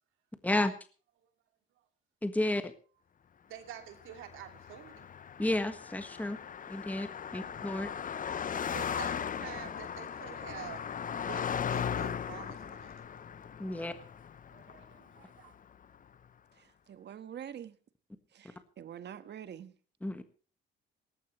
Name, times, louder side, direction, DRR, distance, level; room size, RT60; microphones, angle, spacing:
voice 1, 2.2-2.7 5.4-6.4 6.7-7.1 7.3-7.9 13.6-13.9 20.0-20.2, left 1 dB, 10° left, 9 dB, 1.5 m, -31 dB
voice 2, 3.5-5.1 7.2-7.5 8.7-10.8 11.3-13.0 14.0-14.1 14.5-15.5, right 10 dB, 90° right, 6 dB, 2.8 m, -48 dB
Car passing by, 4.0-15.5, left 8 dB, 45° left, 0.8 m, -38 dB
voice 3, 16.6-17.7 18.3-19.7, right 9 dB, 60° right, 12 dB, 1.4 m, -46 dB
18.5 x 15.5 x 3.1 m, 0.38 s
cardioid pair, 90°, 20 cm